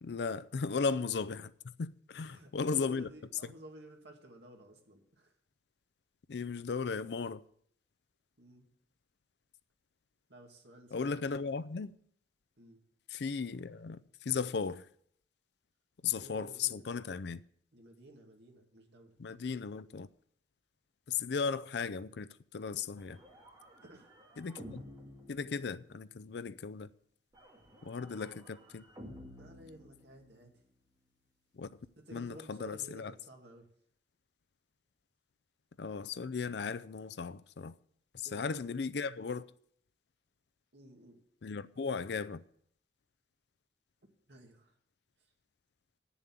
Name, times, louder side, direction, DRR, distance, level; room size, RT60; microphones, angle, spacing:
voice 1, 0.0-3.1 6.3-7.4 10.9-11.9 13.1-14.9 16.0-17.4 19.2-20.1 21.1-23.2 24.4-24.8 25.3-26.9 27.8-28.9 31.5-31.7 32.1-33.1 35.8-37.8 38.1-39.5 41.4-42.4, left 5 dB, 65° left, 0.5 m, -36 dB
voice 2, 2.2-5.3 8.4-8.7 10.3-11.3 12.6-12.8 16.1-16.8 17.7-19.2 23.8-24.1 29.4-30.6 32.0-33.7 38.2-38.4 40.7-41.2 44.3-44.8 45.2-45.3, right 1 dB, 65° right, 2.2 m, -54 dB
sound 1, 23.0-26.2 27.3-30.6, equal, 25° right, 2.5 m, -53 dB
9.2 x 7.1 x 8.9 m
head